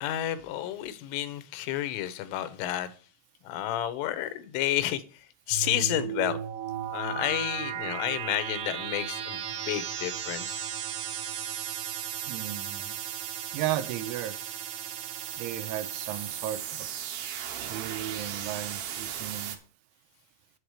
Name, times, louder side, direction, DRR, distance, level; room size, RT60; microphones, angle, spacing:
voice 1, 0.0-2.9 3.5-5.0 5.5-6.4 6.9-10.6, left 12 dB, 90° left, 3.5 m, -31 dB
sound 1, 5.5-19.6, right 10 dB, 70° right, 2.9 m, -35 dB
voice 2, 12.3-13.0 13.5-14.4 15.4-16.9 17.6-19.6, right 12 dB, 90° right, 3.2 m, -35 dB
8.7 x 7.8 x 4.8 m
omnidirectional pair, 5.5 m